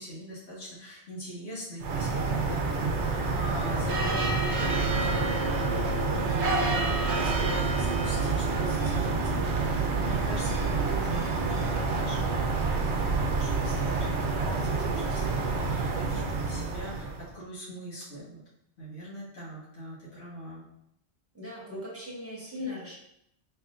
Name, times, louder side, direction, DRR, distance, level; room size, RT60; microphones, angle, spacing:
voice 1, 0.0-12.3 12.7-18.4 18.8-20.6, equal, 75° left, -8 dB, 1.6 m, -41 dB
sound 1, 1.8-17.3, right 3 dB, 90° right, 0.9 m, -28 dB
voice 2, 21.3-22.9, left 2 dB, 15° right, -6 dB, 1.2 m, -38 dB
4.4 x 3.4 x 2.4 m, 0.76 s
omnidirectional pair, 1.1 m